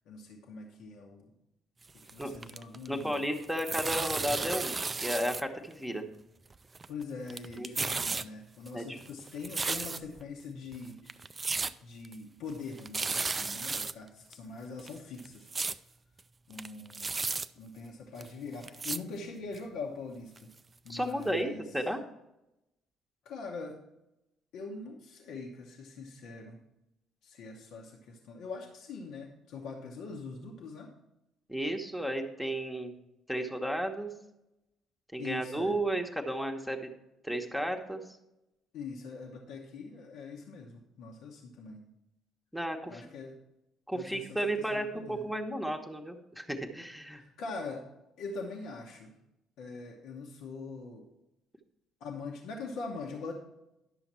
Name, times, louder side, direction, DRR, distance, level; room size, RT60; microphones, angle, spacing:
voice 1, 0.1-1.3 2.1-3.2 6.9-11.4 11.8-15.5 16.5-17.2 17.6-20.5 20.8-21.6 23.2-23.8 24.5-26.6 27.2-30.9 35.2-35.8 38.7-41.8 42.9-43.4 43.9-45.2 47.1-47.8 48.2-49.1 49.6-51.1 52.0-53.3, left 4 dB, 60° left, -1 dB, 1.0 m, -43 dB
sound 1, 1.9-3.1 3.4-5.4 5.7-5.8 6.5-7.0 7.3-8.3 8.7-10.2 10.7-10.8 11.1-11.7 12.0-12.2 12.5-12.6 12.8-13.9 14.3-14.4 14.8-15.8 16.2-16.3 16.5-17.5 18.2-18.3 18.6-19.0 19.5-19.6 20.4-20.5 20.9-21.0 21.2-21.3, right 4 dB, 25° right, 0.4 m, -34 dB
voice 2, 2.9-6.1 7.6-7.7 8.7-9.0 20.9-22.0 31.5-32.9 33.3-34.1 35.1-36.9 37.2-38.2 42.5-43.1 43.9-47.2, right 1 dB, ahead, 3 dB, 1.1 m, -33 dB
11.0 x 6.9 x 4.3 m, 0.90 s
figure-of-eight pair, 50°, 0 cm